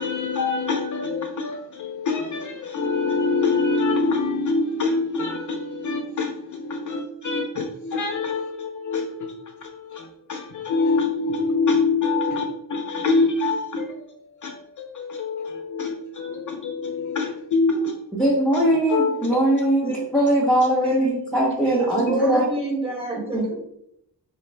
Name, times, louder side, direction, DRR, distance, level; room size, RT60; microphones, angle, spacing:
voice 1, 0.0-9.5 9.9-13.9 14.4-17.9 18.6-19.2, left 3 dB, 50° left, 0.5 m, -25 dB
voice 2, 18.1-22.4 23.3-23.5, right 1 dB, ahead, 0.6 m, -21 dB
voice 3, 21.6-23.5, right 3 dB, 15° right, 1.1 m, -27 dB
4.1 x 2.5 x 3.1 m
wide cardioid pair, 165°, 39 cm